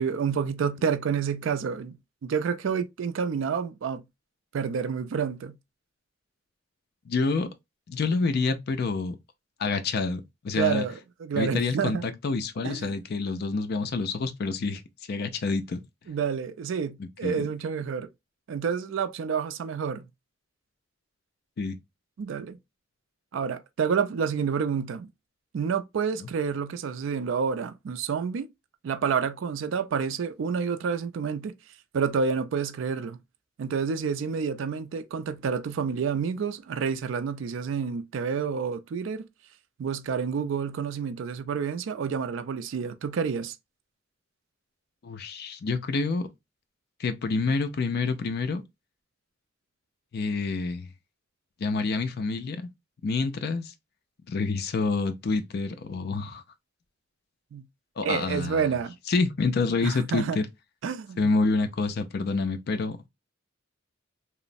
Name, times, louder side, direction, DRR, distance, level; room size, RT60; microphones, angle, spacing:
voice 1, 0.0-4.0 4.5-5.6 10.5-12.0 12.6-12.9 16.1-18.1 18.5-20.1 22.2-22.6 23.3-25.1 25.5-28.5 28.8-31.5 31.9-33.2 33.6-39.3 39.8-43.6 57.5-57.6 58.0-59.0 59.8-60.4 60.8-61.3, right 6 dB, 70° right, 0.3 m, -29 dB
voice 2, 7.1-7.5 7.9-9.2 9.6-10.8 11.4-14.8 15.1-15.8 17.0-17.4 21.6-21.8 26.2-26.3 45.0-46.3 47.0-48.6 50.1-50.9 51.6-52.7 53.0-53.7 54.3-56.4 58.0-58.7 59.1-60.5 61.2-63.0, left 4 dB, 50° left, 0.4 m, -27 dB
3.0 x 2.0 x 2.5 m
head